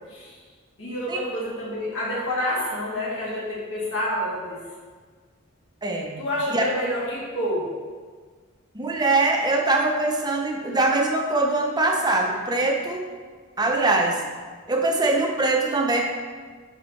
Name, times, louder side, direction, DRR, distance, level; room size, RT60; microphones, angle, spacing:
voice 1, 0.8-4.6 6.2-7.7, left 1 dB, 60° left, -6 dB, 2.1 m, -28 dB
voice 2, 5.8-6.2 6.5-6.6 8.7-13.1 13.6-14.2 14.7-16.0, right 2 dB, 20° right, 1 dB, 0.7 m, -22 dB
11.5 x 3.9 x 3.1 m, 1.5 s
head